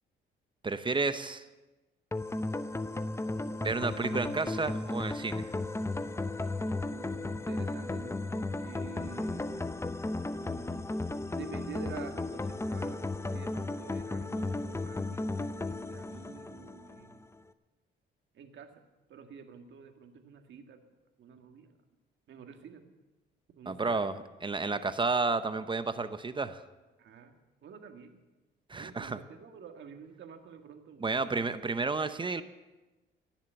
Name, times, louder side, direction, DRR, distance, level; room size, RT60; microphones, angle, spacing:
voice 1, 0.6-1.5 3.6-5.5 23.7-26.6 28.7-29.2 31.0-32.4, right 3 dB, 25° right, 12 dB, 0.8 m, -31 dB
sound 1, 2.1-17.2, left 2 dB, 15° left, 0.7 m, -35 dB
voice 2, 6.9-8.2 8.6-9.8 10.4-10.9 11.4-13.0 13.3-17.2 18.3-18.7 19.1-20.8 21.2-21.7 22.3-22.9 23.6-24.2 27.0-27.3 27.6-28.2 28.8-31.5, right 6 dB, 65° right, 5 dB, 1.9 m, -48 dB
18.0 x 7.3 x 9.0 m, 1.1 s
cardioid pair, 90°, 20 cm